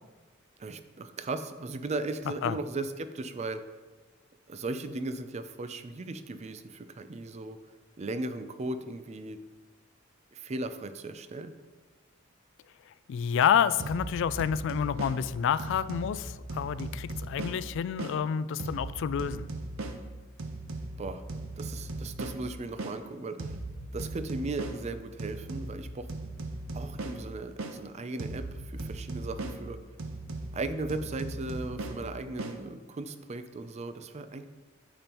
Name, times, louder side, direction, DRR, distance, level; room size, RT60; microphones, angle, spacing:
voice 1, 0.6-3.6 4.5-7.6 8.0-9.4 10.3-11.5 21.0-21.2 21.6-23.6 23.9-26.1 26.7-29.8 30.5-34.5, right 2 dB, 35° right, 10 dB, 0.4 m, -37 dB
voice 2, 13.1-19.5, left 8 dB, 65° left, 15 dB, 0.3 m, -28 dB
sound 1, 13.8-18.2 18.6-23.0 23.4-27.8 28.2-32.6, right 2 dB, 90° right, 0.7 m, -38 dB
8.7 x 6.9 x 3.0 m, 1.3 s
head